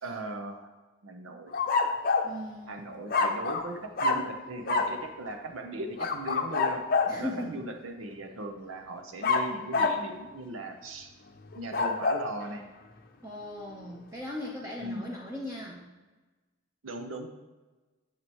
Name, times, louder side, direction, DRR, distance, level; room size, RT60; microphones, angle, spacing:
voice 1, 0.0-0.7 1.0-1.9 2.7-6.8 7.2-11.1 11.5-12.7 14.8-15.1 16.8-17.3, right 2 dB, 85° right, 5 dB, 0.9 m, -38 dB
sound 1, 1.5-2.3 3.1-3.7 4.0-4.3 4.7-5.0 6.0-7.2 9.2-10.1 11.5-12.3, left 4 dB, 45° left, 0.6 m, -27 dB
voice 2, 2.2-2.8 7.1-7.6 13.2-15.8, left 1 dB, 15° right, -4 dB, 0.8 m, -38 dB
9.4 x 6.8 x 3.0 m, 1.2 s
head